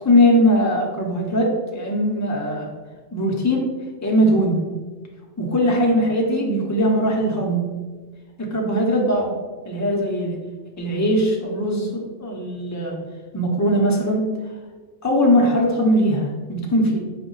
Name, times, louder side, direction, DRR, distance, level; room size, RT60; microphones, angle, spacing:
voice 1, 0.0-2.7 3.1-3.6 4.0-4.6 5.4-7.7 8.4-9.3 9.7-10.4 10.8-13.0 13.3-14.3 15.0-17.0, equal, 30° left, -1 dB, 0.3 m, -20 dB
5.0 x 2.2 x 3.8 m, 1.4 s
omnidirectional pair, 1.3 m